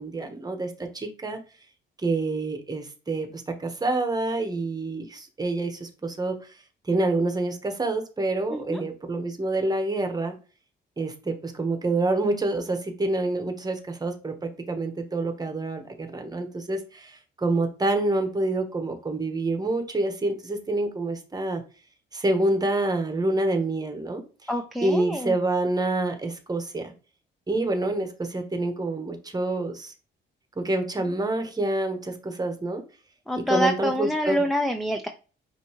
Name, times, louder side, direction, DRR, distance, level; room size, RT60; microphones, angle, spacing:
voice 1, 0.0-1.4 2.0-6.4 6.9-10.4 11.0-14.3 14.7-17.1 17.4-21.6 22.1-24.2 24.8-26.9 27.5-29.9 30.6-32.8 33.4-34.4, right 2 dB, 20° right, 5 dB, 1.1 m, -27 dB
voice 2, 8.5-8.8 24.5-25.3 33.3-35.1, equal, ahead, 6 dB, 0.4 m, -26 dB
5.2 x 2.7 x 3.0 m, 0.35 s
cardioid pair, 90°, 20 cm